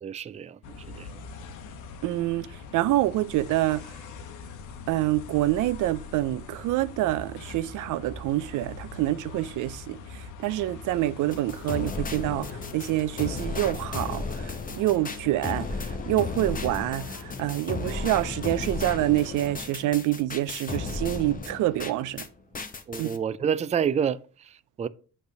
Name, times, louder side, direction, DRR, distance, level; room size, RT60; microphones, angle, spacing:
voice 1, 0.0-1.2 22.9-24.9, right 7 dB, 25° right, 0.4 m, -29 dB
sound 1, 0.6-19.5, left 4 dB, 90° left, 1.0 m, -43 dB
voice 2, 2.0-3.9 4.9-22.3 23.0-23.1, right 16 dB, 85° right, 0.5 m, -27 dB
sound 2, 11.3-22.3 22.5-23.2, left 4 dB, 25° left, 1.0 m, -34 dB
8.1 x 3.3 x 6.5 m
cardioid pair, 90°, 30 cm